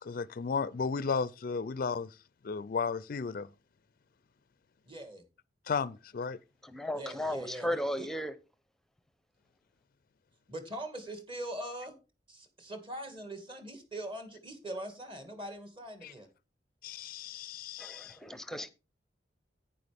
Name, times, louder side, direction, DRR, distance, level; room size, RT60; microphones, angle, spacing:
voice 1, 0.0-2.2 2.4-3.5 5.7-6.4 16.0-16.1 16.8-18.2, left 5 dB, 50° left, 0.4 m, -34 dB
voice 2, 4.9-5.2 6.9-8.1 10.5-11.9 12.3-16.3, right 1 dB, 30° right, 2.0 m, -42 dB
voice 3, 6.6-8.3 17.8-18.7, equal, 5° left, 0.8 m, -35 dB
10.5 x 9.4 x 3.5 m
head